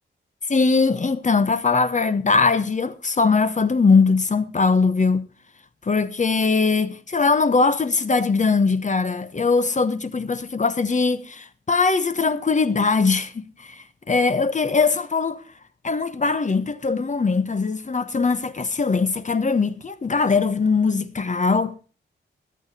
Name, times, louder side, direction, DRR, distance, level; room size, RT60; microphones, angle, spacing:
voice 1, 0.5-5.3 5.8-15.4 15.8-21.8, left 4 dB, 35° left, 1.1 m, -21 dB
14.5 x 11.5 x 4.2 m
wide cardioid pair, 110°, 20 cm